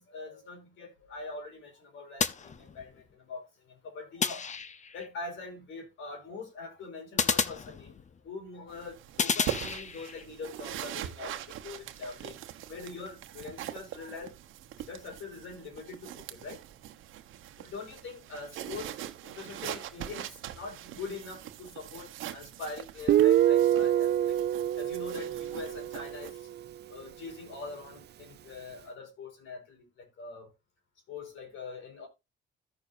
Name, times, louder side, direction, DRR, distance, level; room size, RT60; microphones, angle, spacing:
voice 1, 0.0-4.4 4.9-8.0 8.2-12.4 12.7-14.3 14.9-16.6 17.6-19.0 19.2-20.3 20.5-24.4 24.8-26.4 26.9-29.8 30.2-30.5 31.1-32.1, left 4 dB, 75° left, 4.9 m, -43 dB
sound 1, 2.2-3.1 4.2-5.1 7.2-8.3 9.2-10.3, left 6 dB, 35° left, 0.8 m, -31 dB
sound 2, 8.7-26.3, right 12 dB, 90° right, 1.0 m, -42 dB
Guitar, 23.1-26.6, right 12 dB, 60° right, 0.5 m, -25 dB
15.0 x 6.5 x 2.7 m
cardioid pair, 90°, 20 cm